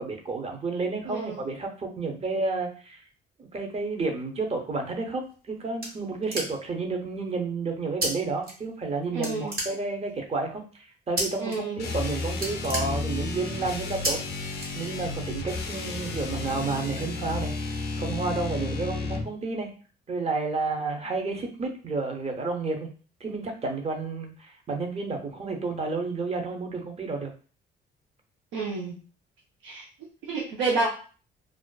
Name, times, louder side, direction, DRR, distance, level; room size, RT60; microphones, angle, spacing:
voice 1, 0.0-3.0 3.4-14.2 14.7-19.7 20.1-22.9 23.2-27.3, right 3 dB, 30° right, 3 dB, 0.6 m, -31 dB
voice 2, 1.1-1.4 9.1-9.5 11.4-11.8 28.5-29.0 29.6-29.8 30.2-30.9, right 3 dB, 85° right, -3 dB, 0.6 m, -29 dB
sound 1, 5.1-6.8 8.0-8.1 8.4-8.9 9.2-10.2 11.2-11.6 11.9-12.0 12.3-13.5 14.0-14.1 14.6-15.2, right 1 dB, 50° right, 1.2 m, -31 dB
sound 2, 11.8-19.3, left 3 dB, 55° left, 0.5 m, -32 dB
2.4 x 2.2 x 2.2 m, 0.38 s
cardioid pair, 90°, 20 cm